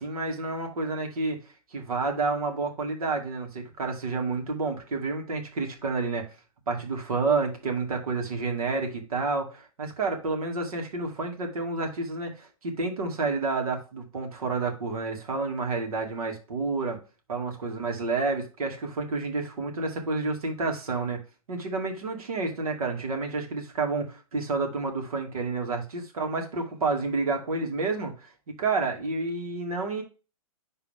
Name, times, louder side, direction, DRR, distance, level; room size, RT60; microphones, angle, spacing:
voice 1, 0.0-1.4 1.7-6.2 6.7-17.0 17.3-21.2 21.5-28.3 28.6-30.0, right 3 dB, 80° right, 3 dB, 2.6 m, -29 dB
11.0 x 4.0 x 3.6 m, 0.33 s
hypercardioid pair, 145°, 18 cm